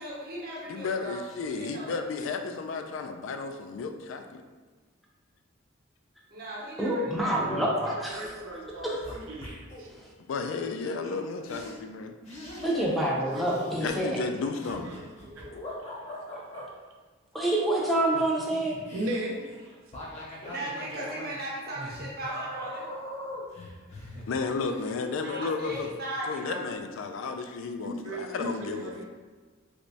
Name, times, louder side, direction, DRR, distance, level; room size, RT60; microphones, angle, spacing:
voice 1, 0.0-2.0 6.3-7.7 8.1-8.3 20.4-22.9 25.2-26.6, right 1 dB, 50° right, -4 dB, 0.8 m, -37 dB
voice 2, 0.7-4.4 10.3-12.1 13.8-14.9 24.3-26.0 26.2-29.0, left 4 dB, 70° left, 6 dB, 0.3 m, -33 dB
voice 3, 6.8-8.3 8.8-9.0 12.6-14.1 17.3-18.8, right 1 dB, ahead, -4 dB, 0.5 m, -27 dB
sound 1, 8.1-8.4 8.6-9.9 11.0-11.1 11.5-11.7 12.2-13.1 13.3-16.7 17.8-25.3 25.7-25.9, left 1 dB, 35° left, 0.8 m, -42 dB
voice 4, 8.1-9.5 13.2-14.0 14.4-15.5 18.9-19.7 27.8-29.0, right 1 dB, 75° right, 0 dB, 0.6 m, -37 dB
3.3 x 3.0 x 2.7 m, 1.4 s
head